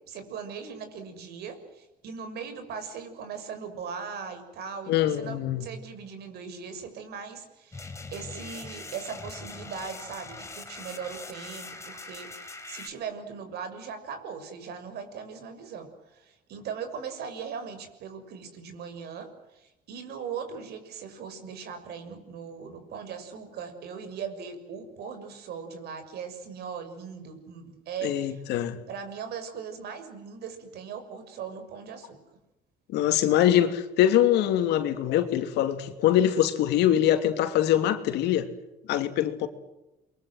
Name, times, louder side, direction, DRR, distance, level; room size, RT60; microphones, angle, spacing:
voice 1, 0.0-19.3 19.5-28.4 28.9-32.2, right 6 dB, 70° right, 6.5 m, -39 dB
voice 2, 4.9-5.7 28.0-28.8 32.9-38.5 38.9-39.5, left 11 dB, 85° left, 2.9 m, -23 dB
sound 1, 7.7-12.9, left 3 dB, 15° left, 3.6 m, -42 dB
29.5 x 23.0 x 7.9 m
cardioid pair, 110°, 17 cm